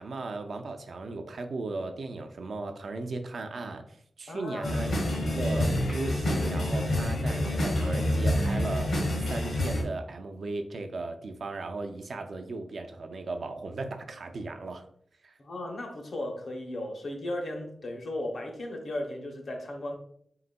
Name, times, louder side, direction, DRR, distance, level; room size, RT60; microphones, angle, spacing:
voice 1, 0.0-5.0 5.3-9.0 9.3-14.9 15.2-15.3, right 3 dB, 55° right, 6 dB, 0.4 m, -36 dB
voice 2, 4.3-5.0 15.4-20.0, left 1 dB, 55° left, 3 dB, 0.7 m, -36 dB
sound 1, 4.6-9.8, left 1 dB, 70° left, 1.1 m, -27 dB
4.2 x 3.9 x 2.2 m, 0.65 s
wide cardioid pair, 175°, 0 cm